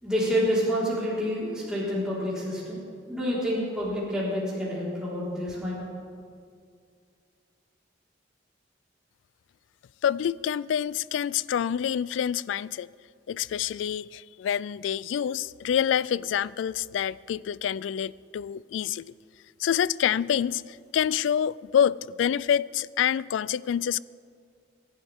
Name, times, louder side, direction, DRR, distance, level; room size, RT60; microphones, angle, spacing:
voice 1, 0.0-2.8 3.1-5.8, equal, 5° right, 4.2 m, -28 dB
voice 2, 10.0-12.9 13.3-19.1 19.6-24.0, left 9 dB, 90° left, 0.3 m, -27 dB
26.0 x 11.5 x 3.6 m
head